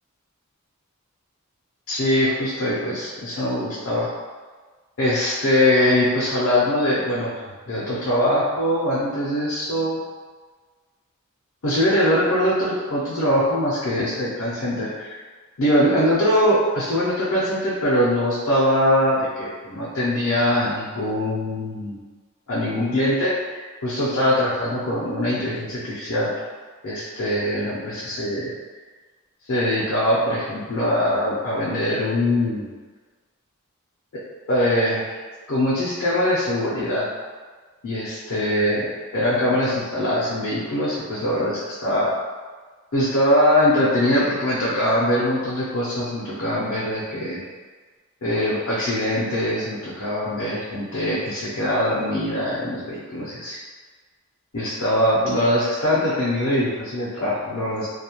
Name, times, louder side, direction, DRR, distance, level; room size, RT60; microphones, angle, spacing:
voice 1, 1.9-4.1 5.0-7.3 7.7-10.0 11.6-15.2 15.6-22.0 22.5-26.3 26.8-28.5 29.5-32.7 34.5-35.0 35.5-37.1 37.8-42.1 42.9-47.4 48.2-53.6 54.5-57.9, left 1 dB, 70° left, -8 dB, 0.6 m, -22 dB
2.3 x 2.1 x 2.8 m, 1.4 s
head